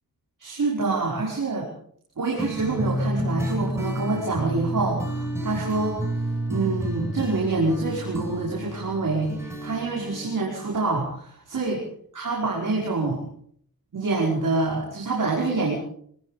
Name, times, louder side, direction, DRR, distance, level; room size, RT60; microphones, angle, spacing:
voice 1, 0.4-1.7 2.2-6.0 6.5-11.8 12.1-13.2 13.9-15.8, right 3 dB, 60° right, -3 dB, 5.7 m, -26 dB
sound 1, 2.4-10.8, right 1 dB, 5° right, 6.5 m, -30 dB
25.0 x 20.0 x 5.2 m, 0.64 s
wide cardioid pair, 110°, 36 cm